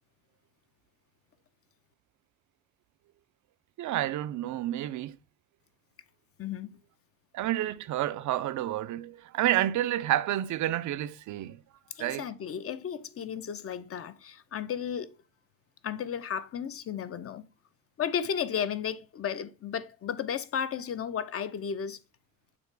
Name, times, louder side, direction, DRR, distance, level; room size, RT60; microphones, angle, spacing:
voice 1, 3.8-5.2 7.3-11.6 12.0-12.3, right 13 dB, 70° right, 0.6 m, -29 dB
voice 2, 6.4-6.8 12.0-15.2 15.8-17.5 18.0-22.0, left 8 dB, 50° left, 0.7 m, -34 dB
7.0 x 3.0 x 4.6 m
cardioid pair, 90°, 30 cm